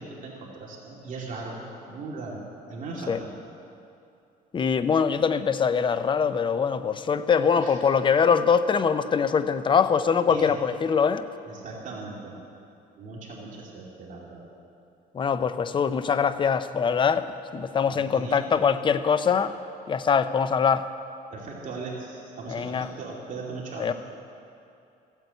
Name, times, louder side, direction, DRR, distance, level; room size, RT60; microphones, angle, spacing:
voice 1, 0.0-1.6 1.9-2.4 2.7-3.3 7.6-7.8 10.3-10.6 11.4-12.4 13.0-14.4 17.9-18.5 21.3-23.9, right 3 dB, 50° right, -3 dB, 2.6 m, -38 dB
voice 2, 4.5-11.2 15.1-19.5 19.9-20.9 22.5-22.9 23.8-23.9, left 6 dB, 30° left, 12 dB, 0.6 m, -23 dB
15.0 x 9.0 x 8.2 m, 2.6 s
cardioid pair, 110°, 17 cm